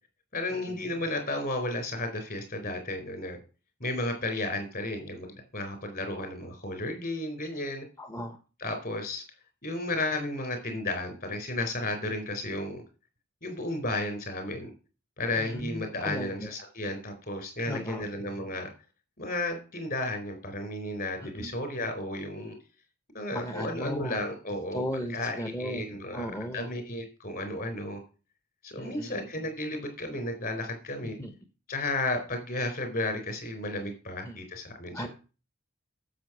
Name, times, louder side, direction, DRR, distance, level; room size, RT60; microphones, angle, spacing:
voice 1, 0.3-3.4 3.8-7.8 8.6-9.2 9.6-12.8 13.4-14.7 15.2-18.7 19.2-22.6 23.1-24.8 25.1-28.0 28.6-31.2 31.7-35.1, left 2 dB, 45° left, 6 dB, 4.3 m, -33 dB
voice 2, 8.0-8.4 15.4-16.5 17.7-18.1 21.2-21.5 23.3-24.2 24.7-26.7 28.8-29.2 31.0-31.3 34.2-34.4 34.9-35.1, equal, 15° left, 7 dB, 1.0 m, -36 dB
10.0 x 7.7 x 6.2 m, 0.34 s
head